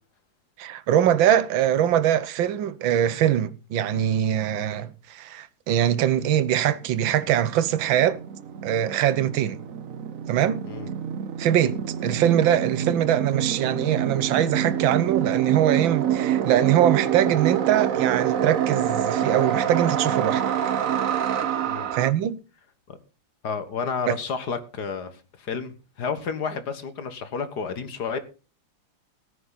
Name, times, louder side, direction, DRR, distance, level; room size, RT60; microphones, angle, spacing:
voice 1, 0.6-8.2 8.6-9.6 10.3-10.6 11.4-20.4 21.9-22.4 24.1-24.2, right 11 dB, 90° right, 1.6 m, -22 dB
sound 1, 6.9-22.1, right 9 dB, 55° right, 1.1 m, -27 dB
voice 2, 23.4-25.1 25.4-28.2, left 5 dB, 60° left, 2.0 m, -31 dB
18.0 x 9.3 x 4.0 m
omnidirectional pair, 2.1 m